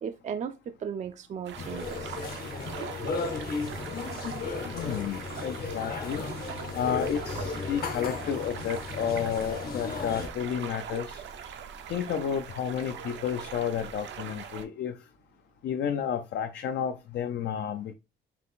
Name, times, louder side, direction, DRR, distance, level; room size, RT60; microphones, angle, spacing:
voice 1, 0.0-2.2 3.0-3.1, right 7 dB, 40° right, 0.4 m, -36 dB
sound 1, 1.4-14.6, right 7 dB, 80° right, 0.7 m, -41 dB
sound 2, 1.6-10.3, left 4 dB, 55° left, 0.9 m, -35 dB
voice 2, 4.7-6.2 6.7-11.2 11.9-15.0 15.6-17.9, left 8 dB, 70° left, 0.5 m, -31 dB
5.9 x 2.5 x 3.6 m
cardioid pair, 145°, 19 cm